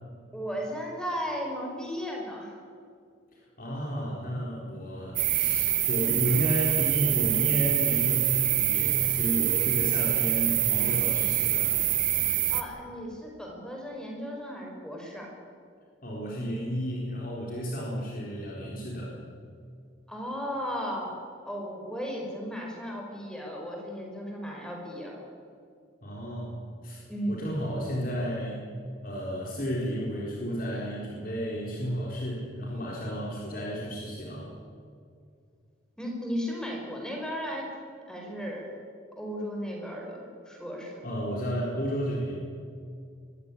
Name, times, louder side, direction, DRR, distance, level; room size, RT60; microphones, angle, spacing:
voice 1, 0.3-2.6 12.5-15.3 20.1-21.1 21.4-25.2 27.1-27.4 36.0-37.7 38.1-38.7 39.2-40.9, equal, 5° left, -1 dB, 5.1 m, -35 dB
voice 2, 3.3-11.7 16.0-19.1 26.0-26.6 26.8-28.7 29.0-34.5 41.0-42.4, equal, 45° left, -4 dB, 4.4 m, -32 dB
sound 1, 5.2-12.6, right 13 dB, 45° right, 1.4 m, -25 dB
23.0 x 15.5 x 10.0 m, 2.3 s
head